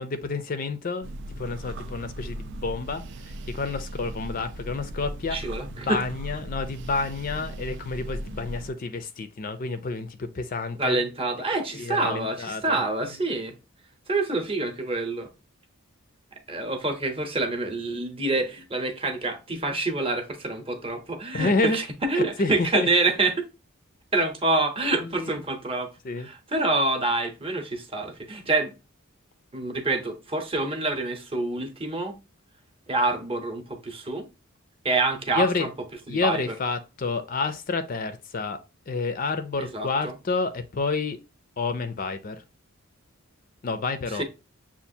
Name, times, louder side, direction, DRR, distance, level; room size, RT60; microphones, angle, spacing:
voice 1, 0.0-5.4 5.9-11.0 11.7-12.8 21.3-21.8 22.1-22.9 25.0-25.4 26.0-26.3 35.3-35.7 36.1-38.6 38.9-41.2 41.6-42.4 43.6-44.2, left 3 dB, 40° left, 0.4 m, -29 dB
sound 1, 1.0-8.7, right 1 dB, 50° right, 0.4 m, -37 dB
voice 2, 5.3-6.0 10.8-13.6 14.1-15.3 16.5-23.5 24.1-28.7 29.5-32.2 32.9-34.3 34.8-35.7 36.1-36.4 39.6-40.1 44.1-44.2, right 2 dB, 25° right, 0.8 m, -27 dB
6.9 x 2.5 x 2.7 m
head